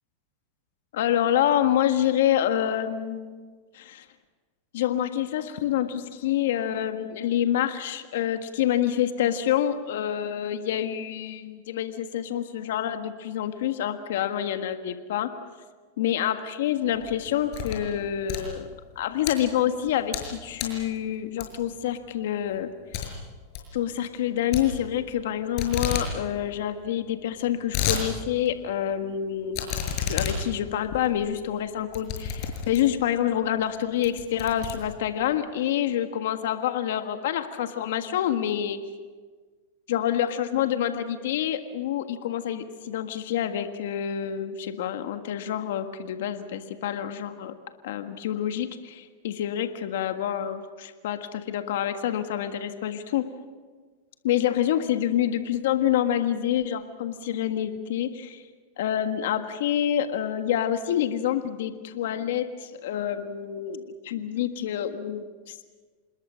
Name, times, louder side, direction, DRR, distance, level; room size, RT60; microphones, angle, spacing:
voice 1, 0.9-3.5 3.7-4.0 4.7-15.3 16.0-18.7 18.9-22.7 23.7-29.6 30.0-38.8 39.9-47.5 47.8-53.3 54.2-58.4 58.8-65.3, left 10 dB, 75° left, 7 dB, 1.6 m, -27 dB
sound 1, 16.9-17.9 18.2-19.3 19.8-20.3 20.6-20.8 21.4-21.8 22.1-22.2 22.5-22.6 22.9-23.1 23.4-23.7 24.5-25.3 25.6-26.1 26.4-26.5 26.7-26.8 27.3-28.0 28.5-28.6 29.5-33.0 33.6-33.7 34.0-35.3, left 8 dB, 50° left, 6.4 m, -31 dB
27.0 x 20.5 x 6.4 m, 1.5 s
hypercardioid pair, 125°, 0 cm